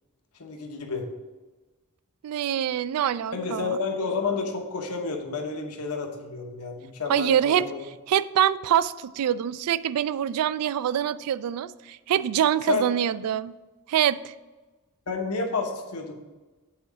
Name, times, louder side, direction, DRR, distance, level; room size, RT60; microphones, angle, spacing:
voice 1, 0.4-1.1 3.3-7.9 12.7-12.9 15.1-16.1, left 4 dB, 85° left, 3 dB, 1.0 m, -30 dB
voice 2, 2.2-3.8 7.1-7.6 8.1-13.6 13.9-14.3, right 10 dB, 90° right, 17 dB, 0.3 m, -25 dB
7.8 x 3.8 x 6.0 m, 1.2 s
head